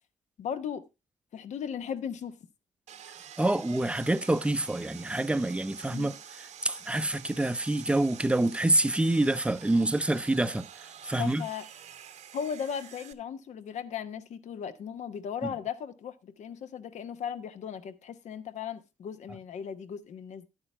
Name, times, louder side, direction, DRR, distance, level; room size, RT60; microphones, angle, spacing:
voice 1, 0.4-0.8 1.3-2.3 5.9-6.2 11.1-11.6 12.3-20.5, left 8 dB, 70° left, 1.1 m, -37 dB
Sawing, 2.9-13.1, right 9 dB, 70° right, 1.0 m, -48 dB
voice 2, 3.4-10.7 11.0-11.5, right 1 dB, 10° right, 0.6 m, -27 dB
11.5 x 8.7 x 3.3 m
cardioid pair, 95°, 13 cm